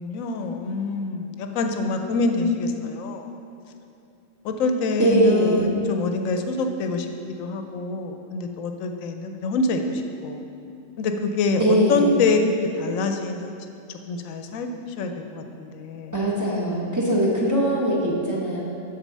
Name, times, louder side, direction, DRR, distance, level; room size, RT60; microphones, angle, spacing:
voice 1, 0.0-3.3 4.4-7.1 7.4-10.4 11.0-12.4 12.7-13.6 13.9-16.1, left 3 dB, 85° left, 5 dB, 1.0 m, -26 dB
voice 2, 5.0-5.7 11.6-12.1 16.1-18.6, right 1 dB, 15° right, -6 dB, 0.9 m, -21 dB
6.2 x 4.3 x 6.5 m, 2.6 s
omnidirectional pair, 1.4 m